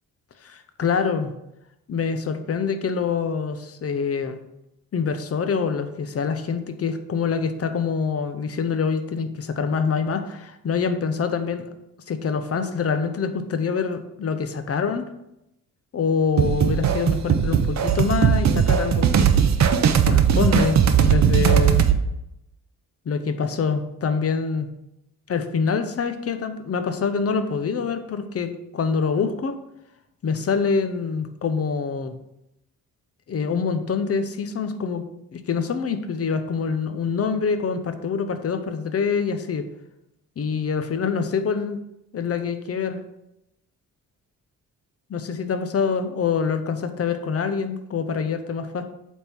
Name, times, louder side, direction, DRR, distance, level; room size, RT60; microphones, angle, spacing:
voice 1, 0.4-1.3 1.9-4.4 4.9-11.6 12.1-15.1 15.9-19.3 20.0-21.9 23.1-24.7 25.3-29.5 30.2-32.1 33.3-35.0 35.3-39.7 40.4-41.8 42.1-43.0 45.1-48.8, left 5 dB, 45° left, 9 dB, 0.8 m, -25 dB
sound 1, 16.4-22.0, right 8 dB, 55° right, 0.7 m, -18 dB
8.4 x 3.7 x 4.5 m, 0.86 s
cardioid pair, 100°, 33 cm